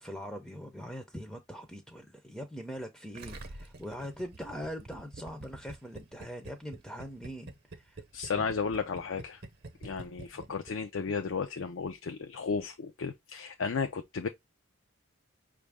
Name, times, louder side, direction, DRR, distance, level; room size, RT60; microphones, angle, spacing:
voice 1, 0.0-8.0 8.3-8.5 10.3-10.5, equal, 5° left, 0.5 m, -42 dB
Gurgling, 3.1-10.7 11.0-11.1, right 2 dB, 50° right, 0.8 m, -46 dB
voice 2, 8.1-9.4 9.8-14.3, left 5 dB, 75° left, 0.5 m, -34 dB
5.3 x 2.5 x 3.4 m
head